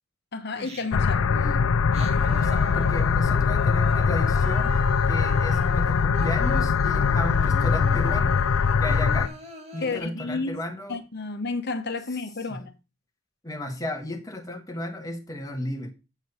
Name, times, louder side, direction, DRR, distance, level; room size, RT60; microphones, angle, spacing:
voice 1, 0.3-1.2 9.8-10.6 10.9-12.7, left 3 dB, 50° left, 1.1 m, -31 dB
Singing, 0.6-1.2 1.7-10.0, right 1 dB, 30° right, 1.8 m, -40 dB
sound 1, 0.9-9.3, left 5 dB, 80° left, 0.5 m, -22 dB
voice 2, 1.1-4.8 5.1-8.4 8.8-9.3 9.7-11.0 12.5-12.6 13.4-15.9, left 1 dB, 15° left, 1.4 m, -34 dB
8.2 x 4.6 x 5.5 m
head